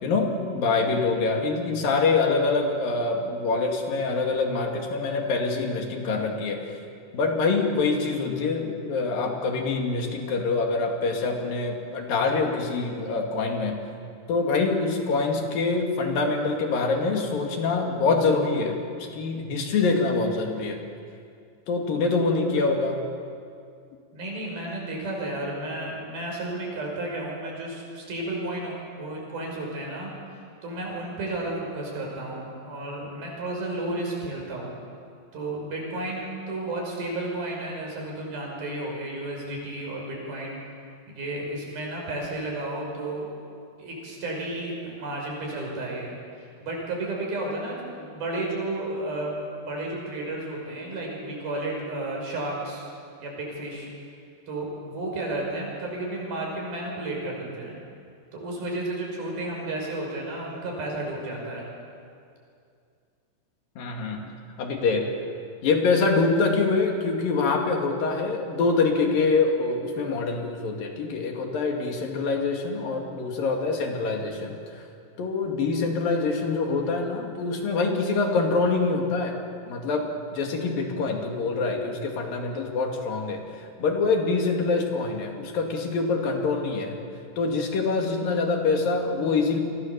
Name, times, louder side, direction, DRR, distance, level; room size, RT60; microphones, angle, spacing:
voice 1, 0.0-6.8 7.1-13.8 14.3-18.8 19.1-20.8 21.7-23.0 63.8-64.2 64.6-65.1 65.6-74.8 75.2-79.4 79.7-87.0 87.4-89.6, left 4 dB, 75° left, 2 dB, 4.2 m, -25 dB
voice 2, 24.1-30.1 30.6-34.8 35.3-40.6 41.1-43.3 43.8-46.2 46.6-49.4 49.7-52.8 53.2-53.9 54.5-57.8 58.3-61.7, right 2 dB, 80° right, -1 dB, 7.6 m, -32 dB
29.5 x 23.0 x 7.1 m, 2.4 s
omnidirectional pair, 4.2 m